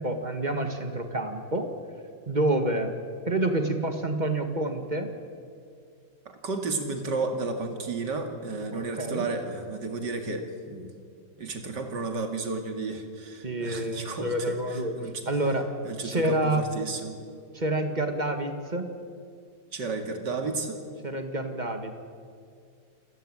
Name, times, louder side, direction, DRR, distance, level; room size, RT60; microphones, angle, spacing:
voice 1, 0.0-1.7 2.3-2.9 3.3-5.1 8.7-9.3 13.4-14.9 15.3-15.7 16.0-16.7 17.5-18.9 21.0-21.9, right 1 dB, 25° right, 6 dB, 1.8 m, -28 dB
voice 2, 6.3-10.9 11.4-15.2 15.8-17.2 19.7-20.8, right 3 dB, 60° right, 5 dB, 2.9 m, -32 dB
28.5 x 15.0 x 8.9 m, 2.2 s
omnidirectional pair, 2.1 m